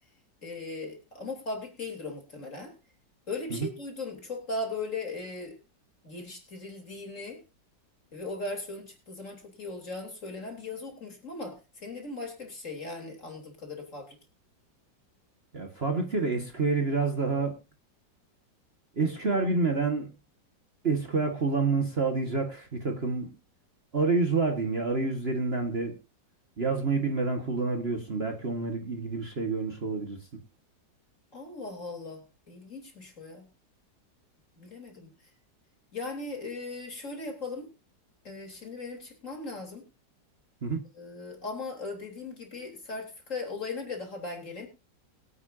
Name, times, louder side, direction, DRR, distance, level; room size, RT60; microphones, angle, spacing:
voice 1, 0.4-2.7 3.3-5.6 6.0-7.4 8.1-14.2 31.3-33.5 34.6-35.1 35.9-37.7 38.2-39.8 41.0-44.7, left 3 dB, 40° left, 3.9 m, -38 dB
voice 2, 15.5-17.6 19.0-20.1 20.8-23.3 23.9-26.0 26.6-30.2 40.6-40.8, right 4 dB, 35° right, 1.7 m, -28 dB
23.5 x 8.7 x 2.7 m
omnidirectional pair, 2.0 m